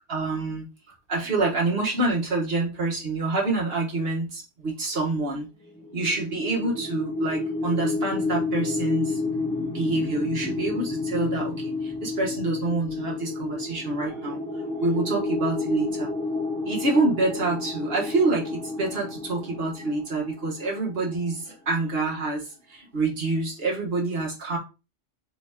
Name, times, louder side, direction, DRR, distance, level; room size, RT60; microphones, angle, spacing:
voice 1, 0.1-0.6 1.1-5.5 5.9-9.2 9.7-11.5 11.8-14.4 14.8-16.1 16.6-24.6, right 3 dB, 55° right, -3 dB, 1.6 m, -27 dB
sound 1, 5.8-20.8, left 3 dB, 5° left, 0.9 m, -30 dB
4.5 x 2.9 x 3.5 m, 0.30 s
omnidirectional pair, 1.2 m